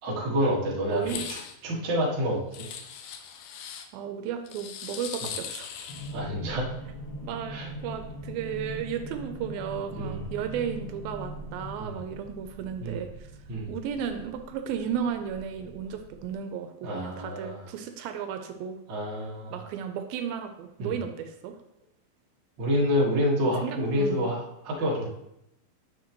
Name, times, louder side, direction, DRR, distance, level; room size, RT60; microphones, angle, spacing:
voice 1, 0.0-2.7 6.1-6.7 7.5-7.7 10.0-10.2 11.8-11.9 12.8-13.0 13.5-13.7 16.8-17.6 18.9-19.6 20.8-20.9 22.6-25.1, equal, 40° right, -5 dB, 1.7 m, -28 dB
voice 2, 0.9-1.3 3.9-5.9 7.2-7.6 7.8-13.3 13.7-18.8 19.5-21.5 23.4-24.3, right 8 dB, 85° right, 7 dB, 2.4 m, -34 dB
sound 1, 1.0-1.6 2.5-3.9 4.5-6.2, left 8 dB, 75° left, 2.0 m, -39 dB
sound 2, 5.9-16.3, right 1 dB, 45° left, 2.5 m, -41 dB
9.4 x 6.9 x 3.0 m, 0.83 s
omnidirectional pair, 4.2 m